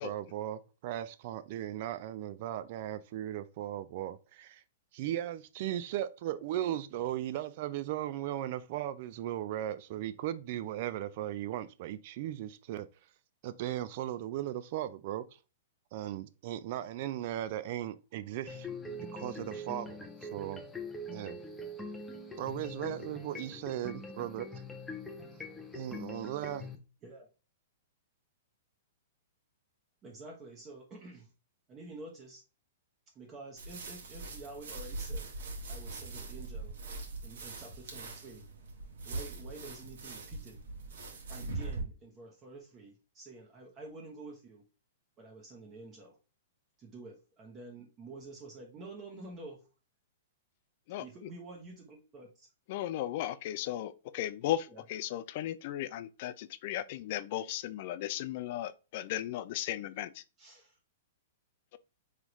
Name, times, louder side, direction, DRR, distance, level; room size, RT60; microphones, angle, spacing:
voice 1, 0.0-4.6 4.9-12.9 13.4-15.2 15.9-18.7 19.1-20.6 21.1-21.4 22.4-24.5 25.7-26.7, right 12 dB, 50° right, 0.3 m, -37 dB
sound 1, 18.5-26.8, left 2 dB, 10° left, 0.6 m, -43 dB
voice 2, 30.0-31.3 31.7-32.4 33.1-35.3 35.7-36.8 37.2-38.4 39.0-40.6 41.3-44.6 45.2-46.2 46.8-49.6 51.0-52.5 54.7-54.8 60.4-60.8, right 2 dB, 25° right, 1.0 m, -49 dB
sound 2, 33.6-41.8, right 3 dB, 75° right, 1.3 m, -41 dB
voice 3, 50.9-51.3 52.7-60.2 61.7-61.8, left 13 dB, 50° left, 0.3 m, -36 dB
3.8 x 3.2 x 3.0 m
hypercardioid pair, 140°, 0 cm